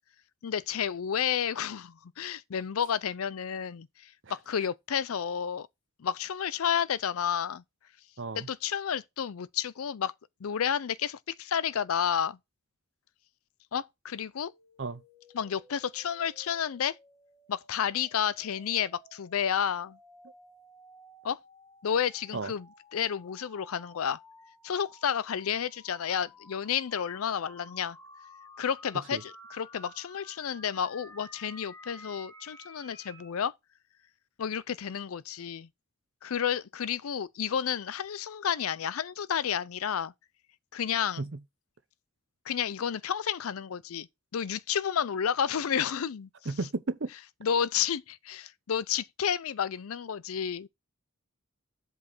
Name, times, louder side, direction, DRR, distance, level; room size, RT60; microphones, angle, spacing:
voice 1, 0.4-5.7 6.0-7.6 8.3-10.1 10.4-12.4 13.7-14.5 15.3-17.0 17.5-20.0 21.2-21.4 21.8-24.2 24.6-28.0 28.6-33.5 34.4-35.7 36.2-40.1 40.7-41.3 42.5-44.1 44.3-46.3 47.4-50.7, left 8 dB, 85° left, 0.5 m, -31 dB
sound 1, 14.4-33.3, left 1 dB, 15° left, 1.6 m, -54 dB
voice 2, 46.5-47.1, right 3 dB, 55° right, 0.7 m, -33 dB
7.8 x 5.4 x 4.0 m
head